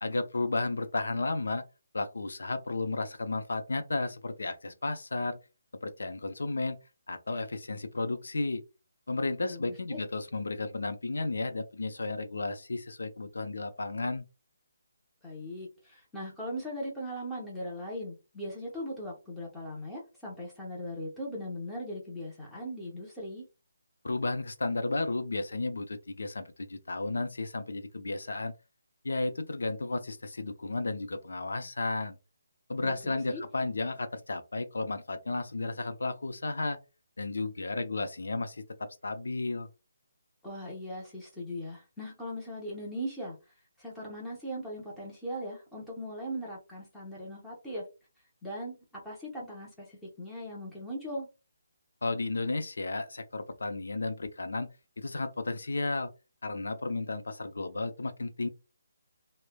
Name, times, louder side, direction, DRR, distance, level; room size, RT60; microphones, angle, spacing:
voice 1, 0.0-1.6 1.9-5.4 5.8-6.8 7.1-8.6 9.1-14.2 24.0-28.5 29.0-32.2 32.7-36.8 37.2-38.6 39.0-39.7 52.0-54.7 55.0-56.1 56.4-58.5, left 3 dB, 85° left, 0.5 m, -33 dB
voice 2, 9.4-10.0 15.2-23.4 32.8-33.4 40.4-43.4 43.8-47.8 48.4-51.3, equal, 5° left, 0.7 m, -39 dB
3.1 x 2.0 x 2.2 m
hypercardioid pair, 175°, 0 cm